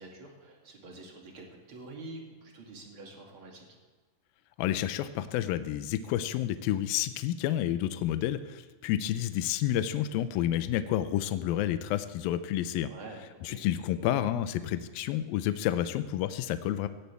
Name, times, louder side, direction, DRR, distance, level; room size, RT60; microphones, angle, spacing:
voice 1, 0.0-3.6 12.9-13.6, right 2 dB, 40° right, 0 dB, 2.5 m, -47 dB
voice 2, 4.6-12.9 13.4-16.9, left 12 dB, 80° left, 11 dB, 2.2 m, -30 dB
17.5 x 16.0 x 3.4 m, 1.3 s
omnidirectional pair, 4.7 m